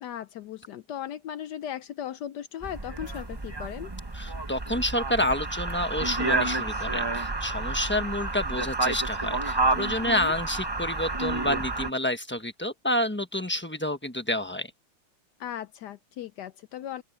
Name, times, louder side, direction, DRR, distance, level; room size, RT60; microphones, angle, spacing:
voice 1, 0.0-3.9 10.0-10.3 15.4-17.0, left 10 dB, 75° left, 0.9 m, -37 dB
sound 1, 2.6-11.9, right 2 dB, 35° right, 0.4 m, -30 dB
voice 2, 4.1-14.7, left 1 dB, 10° left, 0.6 m, -29 dB
open air
omnidirectional pair, 2.4 m